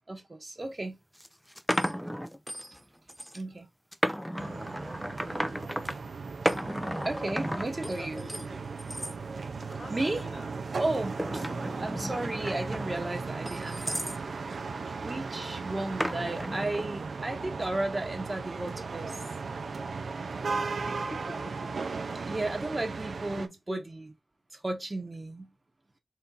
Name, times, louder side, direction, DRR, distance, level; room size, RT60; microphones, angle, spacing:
voice 1, 0.1-1.0 3.3-3.7 7.0-8.2 9.9-10.3 10.8-11.5 11.8-14.0 14.9-19.2 22.2-24.0 24.5-25.5, right 2 dB, 35° right, 1.1 m, -34 dB
sound 1, 0.6-0.7 1.2-2.8 3.1-3.4 3.9-6.0 6.5-8.5 8.8-9.1 9.6-10.0 10.7-14.2 16.0-16.9, equal, ahead, 0.5 m, -34 dB
sound 2, 4.4-23.5, right 4 dB, 85° right, 0.6 m, -36 dB
voice 2, 7.8-8.7 9.7-10.5 14.8-15.0 20.8-21.9 23.4-23.9, left 2 dB, 45° left, 1.4 m, -45 dB
4.3 x 2.6 x 3.8 m
wide cardioid pair, 90°, 0 cm